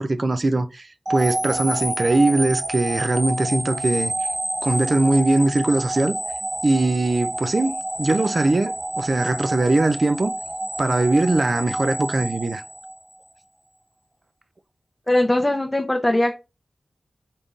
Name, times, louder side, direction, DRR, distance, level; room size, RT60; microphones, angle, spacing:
voice 1, 0.0-4.1 4.6-6.2 6.6-10.3 10.8-12.6, right 2 dB, 55° right, 0.4 m, -21 dB
sound 1, 1.0-13.2, right 1 dB, 40° right, 2.1 m, -28 dB
voice 2, 15.1-16.3, left 1 dB, 20° left, 0.6 m, -20 dB
4.1 x 3.6 x 2.4 m
cardioid pair, 50°, 0 cm